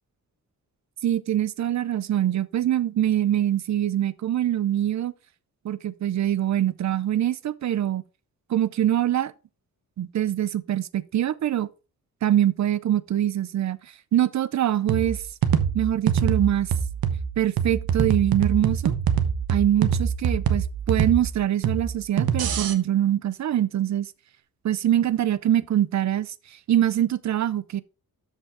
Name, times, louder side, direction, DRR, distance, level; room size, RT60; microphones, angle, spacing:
voice 1, 1.0-5.1 5.6-8.0 8.5-9.3 10.0-11.7 12.2-13.8 14.1-15.2 15.7-16.7 17.4-18.9 19.5-24.1 24.6-27.8, right 11 dB, 50° right, 0.5 m, -24 dB
sound 1, 14.9-22.7, right 7 dB, 75° right, 1.1 m, -25 dB
12.5 x 5.5 x 3.5 m
wide cardioid pair, 180°, 36 cm